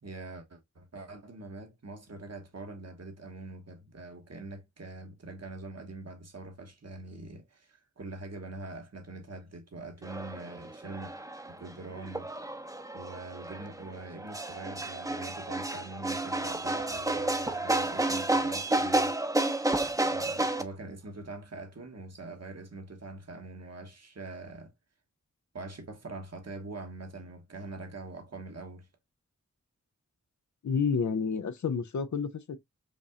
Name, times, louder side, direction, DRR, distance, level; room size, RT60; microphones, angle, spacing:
voice 1, 0.0-11.1 11.5-12.3 12.9-19.2 20.0-24.7 25.5-28.9, right 2 dB, 60° right, 1.0 m, -44 dB
sound 1, 10.0-20.6, right 2 dB, 10° right, 0.6 m, -31 dB
voice 2, 30.6-32.6, left 6 dB, 75° left, 0.5 m, -30 dB
5.2 x 2.7 x 2.4 m
wide cardioid pair, 50°, 29 cm